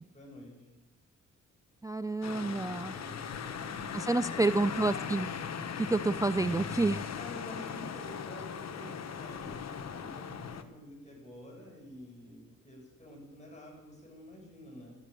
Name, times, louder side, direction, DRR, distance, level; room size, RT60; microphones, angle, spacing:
voice 1, 0.1-0.5 2.3-4.9 7.1-15.0, left 1 dB, 20° left, -1 dB, 7.3 m, -49 dB
voice 2, 1.8-2.9 3.9-5.3 5.8-7.0, right 2 dB, 10° right, 13 dB, 0.4 m, -29 dB
sound 1, 2.2-10.6, left 6 dB, 55° left, 1.1 m, -39 dB
14.5 x 11.5 x 6.8 m, 1.1 s
cardioid pair, 75°, 32 cm